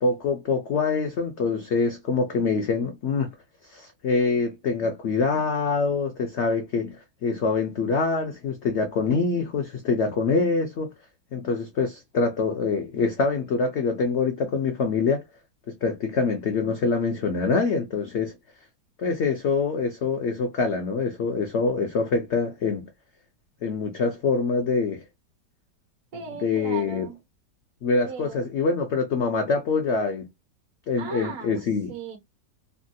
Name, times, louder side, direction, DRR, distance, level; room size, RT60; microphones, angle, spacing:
voice 1, 0.0-3.3 3.7-10.9 11.3-15.2 15.7-18.3 19.0-22.9 23.6-25.0 26.3-27.1 27.8-30.3 30.9-31.9, left 4 dB, 80° left, 0.6 m, -25 dB
voice 2, 26.1-27.2 28.1-28.4 31.0-31.6 31.9-32.2, right 6 dB, 55° right, 1.4 m, -37 dB
3.4 x 2.7 x 2.2 m
omnidirectional pair, 1.9 m